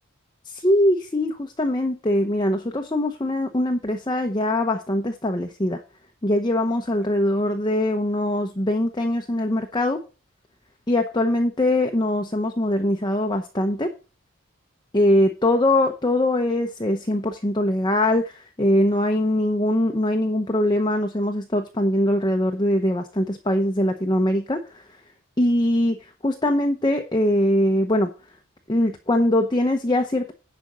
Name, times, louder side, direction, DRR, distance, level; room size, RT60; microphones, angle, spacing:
voice 1, 0.4-5.8 6.2-10.0 10.9-13.9 14.9-24.8 25.4-28.1 28.7-30.3, left 1 dB, 20° left, 4 dB, 0.8 m, -22 dB
10.5 x 5.3 x 6.0 m, 0.33 s
head